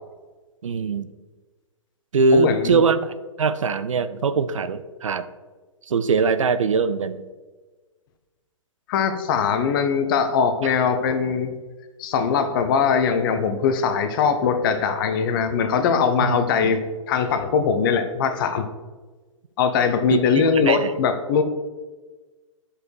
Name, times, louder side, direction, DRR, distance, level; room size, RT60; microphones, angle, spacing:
voice 1, 0.6-1.1 2.1-5.3 5.9-7.3 10.6-10.7 16.2-16.7 20.1-20.9, right 4 dB, 70° right, 13 dB, 0.5 m, -22 dB
voice 2, 2.3-2.8 8.9-11.5 12.0-16.8 17.1-18.7 19.6-21.4, left 6 dB, 40° left, 8 dB, 0.9 m, -21 dB
8.3 x 4.9 x 4.7 m, 1.3 s
figure-of-eight pair, 120°, 17 cm